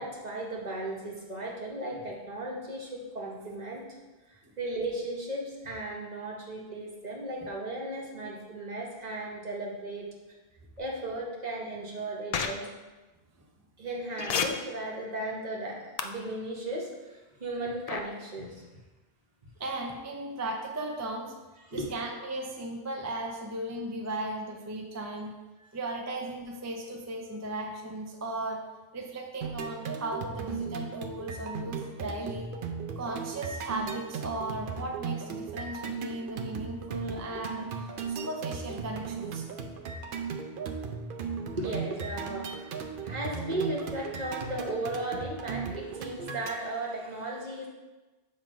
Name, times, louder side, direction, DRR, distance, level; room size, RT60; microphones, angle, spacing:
voice 1, 0.0-3.9 4.3-10.1 10.8-12.7 13.8-18.6 21.7-21.9 25.6-25.7 40.7-40.8 41.5-42.7 43.0-47.7, right 1 dB, 45° right, -2 dB, 1.2 m, -36 dB
sound 1, 12.3-12.5 14.2-14.4 16.0-16.1 17.9-18.0, left 7 dB, 55° left, 0.4 m, -28 dB
voice 2, 19.6-21.3 21.7-25.3 25.7-28.6 28.9-32.5 33.0-39.5 40.7-40.8 41.4-41.5, right 2 dB, 20° right, 2 dB, 0.5 m, -36 dB
sound 2, 29.4-46.6, right 5 dB, 60° right, 0.7 m, -37 dB
7.5 x 3.2 x 5.1 m, 1.2 s
omnidirectional pair, 1.1 m